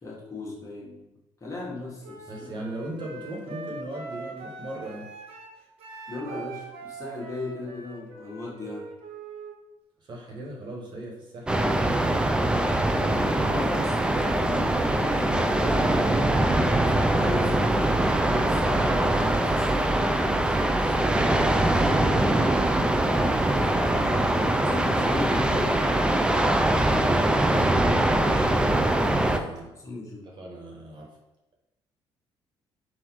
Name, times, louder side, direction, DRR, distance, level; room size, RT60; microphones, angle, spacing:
voice 1, 0.0-1.0 1.4-2.6 6.1-8.9 13.1-16.3 16.8-18.1 18.4-20.1 23.0-26.0 26.3-26.7 29.3-29.5 29.8-30.3, left 2 dB, 30° left, -4 dB, 1.4 m, -37 dB
Wind instrument woodwind instrument, 2.0-9.5, right 3 dB, 75° right, 0.8 m, -42 dB
voice 2, 2.3-5.1 10.1-12.2 20.2-22.0 28.1-28.5 29.2-29.7 30.4-31.1, right 1 dB, 50° right, -2 dB, 1.3 m, -39 dB
sound 1, 11.5-29.4, right 1 dB, 10° right, 0.4 m, -23 dB
4.0 x 2.6 x 4.5 m, 0.93 s
cardioid pair, 80°, 10 cm